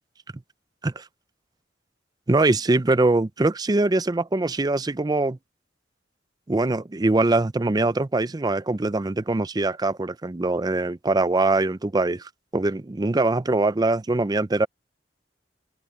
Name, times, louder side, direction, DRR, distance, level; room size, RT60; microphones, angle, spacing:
voice 1, 2.3-5.4 6.5-14.7, right 2 dB, 20° right, 0.5 m, -23 dB
open air
head